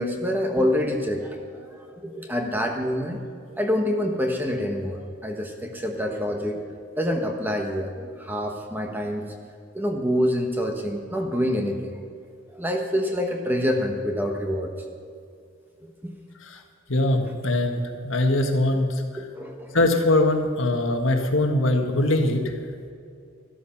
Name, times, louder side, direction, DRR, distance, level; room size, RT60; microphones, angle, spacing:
voice 1, 0.0-3.2 3.6-9.3 9.7-12.0 12.5-14.7 16.0-16.1 19.2-19.7, equal, 10° right, 3 dB, 1.1 m, -26 dB
voice 2, 16.9-19.0 19.7-22.5, left 1 dB, 80° left, 4 dB, 1.6 m, -22 dB
13.0 x 12.5 x 5.9 m, 2.4 s
head